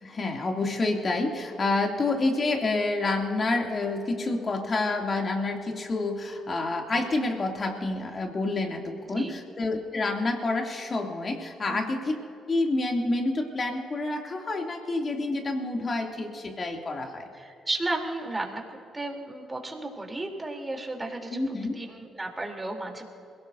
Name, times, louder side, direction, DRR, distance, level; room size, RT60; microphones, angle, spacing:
voice 1, 0.0-12.2 12.5-17.3 21.3-21.8, left 2 dB, 40° left, 2 dB, 2.7 m, -28 dB
voice 2, 17.3-21.4 21.7-23.1, right 2 dB, 20° right, 1 dB, 3.4 m, -34 dB
27.5 x 17.0 x 2.7 m, 2.7 s
hypercardioid pair, 45°, 0 cm